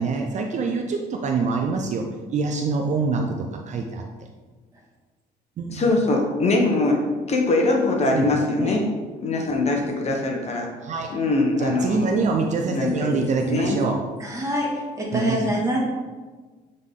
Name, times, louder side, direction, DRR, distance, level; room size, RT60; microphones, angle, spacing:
voice 1, 0.0-2.0 2.3-3.4 3.7-4.0 5.6-5.8 8.1-8.8 10.8-11.1 11.6-14.0 15.1-15.6, right 4 dB, 45° right, 2 dB, 0.6 m, -25 dB
voice 2, 5.7-8.9 9.2-10.7 11.1-12.2 12.7-13.8, left 2 dB, 40° left, 1 dB, 1.2 m, -22 dB
voice 3, 14.2-14.7 15.0-15.8, equal, 20° right, -3 dB, 1.9 m, -25 dB
7.8 x 3.9 x 3.7 m, 1.3 s
cardioid pair, 110°, 17 cm